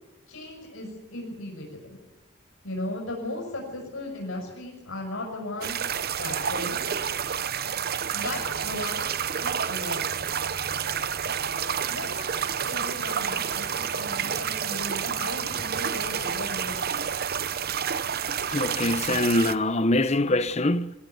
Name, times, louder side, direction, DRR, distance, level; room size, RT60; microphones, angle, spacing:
voice 1, 0.3-2.0 2.6-5.8 6.2-7.0 8.1-9.1 9.3-10.2 11.2-17.0, left 1 dB, 85° left, 7.0 m, -37 dB
sound 1, 5.6-19.6, right 8 dB, 50° right, 0.9 m, -29 dB
voice 2, 18.3-20.9, left 2 dB, 35° left, 0.9 m, -24 dB
22.5 x 16.0 x 9.4 m
head